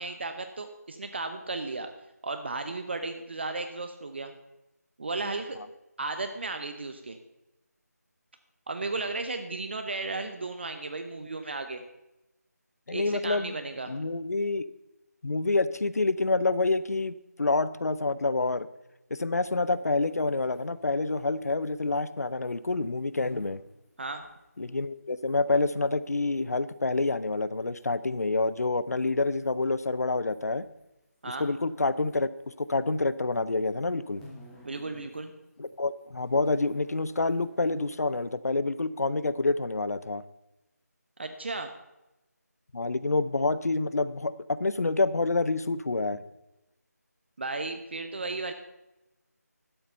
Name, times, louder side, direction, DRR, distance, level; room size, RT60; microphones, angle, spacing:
voice 1, 0.0-1.9 2.2-4.3 5.0-5.6 6.0-7.2 8.7-11.8 12.9-13.9 24.0-24.2 31.2-31.5 34.6-35.3 41.2-41.7 47.4-48.5, right 3 dB, 40° right, 7 dB, 0.8 m, -34 dB
voice 2, 12.9-13.5 13.9-14.7 15.2-18.7 19.1-23.6 24.6-30.7 31.2-32.3 32.6-34.2 35.6-40.2 42.7-46.2, left 3 dB, 65° left, 16 dB, 0.6 m, -27 dB
sound 1, 19.4-26.4 26.7-32.7 32.9-35.2 35.4-38.3, equal, 5° left, 1.3 m, -56 dB
12.0 x 7.8 x 5.5 m, 0.95 s
figure-of-eight pair, 165°, 9 cm